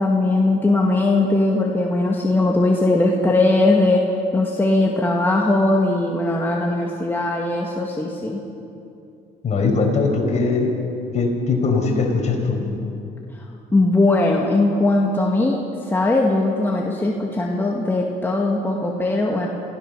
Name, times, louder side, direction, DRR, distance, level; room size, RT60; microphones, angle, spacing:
voice 1, 0.0-4.0 4.3-8.4 13.5-15.6 15.9-19.5, left 2 dB, 10° left, -1 dB, 2.0 m, -19 dB
voice 2, 9.4-10.8 11.1-12.7, left 4 dB, 45° left, 1 dB, 5.2 m, -20 dB
26.5 x 16.0 x 6.8 m, 2.7 s
cardioid pair, 110°, 17 cm